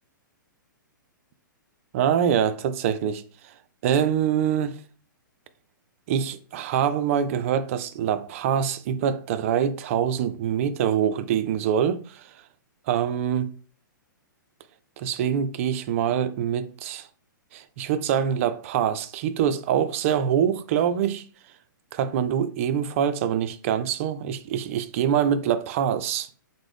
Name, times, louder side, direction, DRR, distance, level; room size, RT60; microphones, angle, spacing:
voice 1, 1.9-3.2 3.8-4.8 6.1-12.3 12.9-13.5 15.0-17.1 17.5-21.2 21.9-26.3, right 9 dB, 40° right, 0.3 m, -24 dB
3.6 x 2.0 x 3.2 m
figure-of-eight pair, 120°, 11 cm